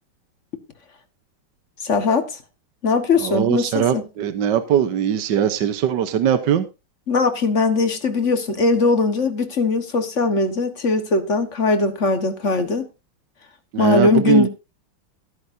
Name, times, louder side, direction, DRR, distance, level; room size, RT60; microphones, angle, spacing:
voice 1, 1.8-2.3 2.8-4.0 7.1-12.9 13.8-14.5, left 3 dB, 40° left, 1.5 m, -20 dB
voice 2, 3.2-6.7 13.7-14.5, right 9 dB, 60° right, 1.4 m, -20 dB
14.5 x 13.0 x 2.7 m
omnidirectional pair, 2.4 m